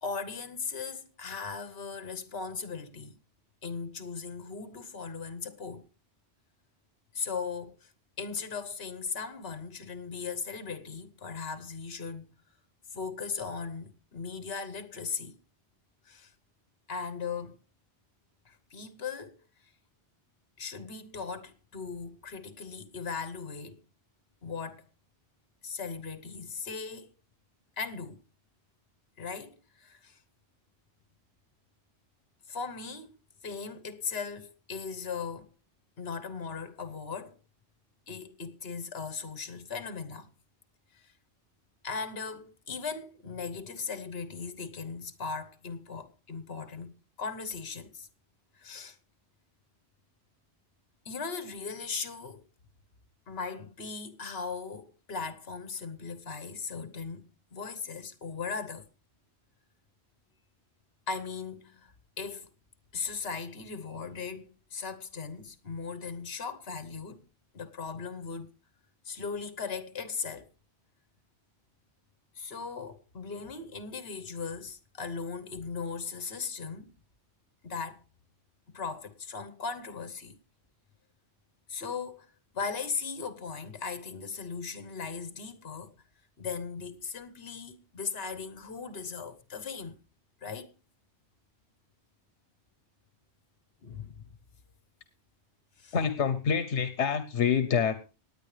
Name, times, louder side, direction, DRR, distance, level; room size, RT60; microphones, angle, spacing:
voice 1, 0.0-3.2 3.6-5.9 7.1-7.9 8.2-12.4 12.9-15.4 16.0-16.3 16.9-17.6 18.4-19.4 20.6-23.8 24.4-24.8 25.6-27.1 27.8-28.2 29.2-30.2 32.5-33.2 33.4-35.5 36.0-37.4 38.1-40.3 40.9-41.1 41.8-46.9 47.2-48.1 48.6-49.0 51.0-52.4 53.3-58.9 61.1-62.5 62.9-67.3 67.5-68.5 69.0-70.5 72.3-76.9 77.6-78.0 78.7-80.4 81.7-82.3 82.5-85.9 86.4-90.0 90.4-90.7 93.8-94.2 95.8-95.9, left 5 dB, 60° left, 1.5 m, -38 dB
voice 2, 95.9-98.0, left 7 dB, 80° left, 1.2 m, -27 dB
18.0 x 9.9 x 3.3 m
omnidirectional pair, 1.2 m